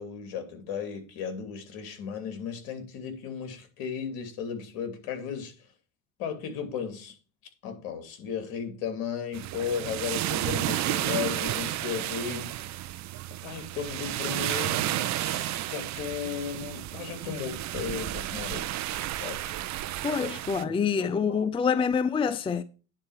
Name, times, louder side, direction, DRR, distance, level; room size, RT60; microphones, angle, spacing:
voice 1, 0.0-5.5 6.2-7.1 7.6-12.5 13.4-18.8 19.1-19.5 20.1-20.3 20.6-20.7 21.3-21.5, left 7 dB, 65° left, 3.0 m, -35 dB
sound 1, 9.3-20.6, right 14 dB, 45° right, 0.8 m, -32 dB
voice 2, 20.0-22.6, left 6 dB, 15° left, 0.5 m, -26 dB
9.9 x 4.4 x 7.3 m
supercardioid pair, 110°, 40 cm